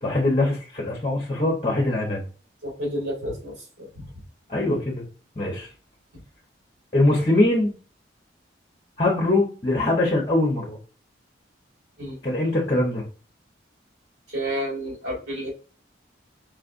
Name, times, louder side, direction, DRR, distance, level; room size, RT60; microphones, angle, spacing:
voice 1, 0.0-2.2 4.5-5.0 5.4-5.7 6.9-7.7 9.0-10.8 12.2-13.0, left 2 dB, 30° left, -1 dB, 1.0 m, -22 dB
voice 2, 2.6-3.9 12.0-12.2 14.3-15.5, right 1 dB, 80° right, -1 dB, 2.1 m, -30 dB
4.9 x 3.3 x 2.6 m, 0.36 s
head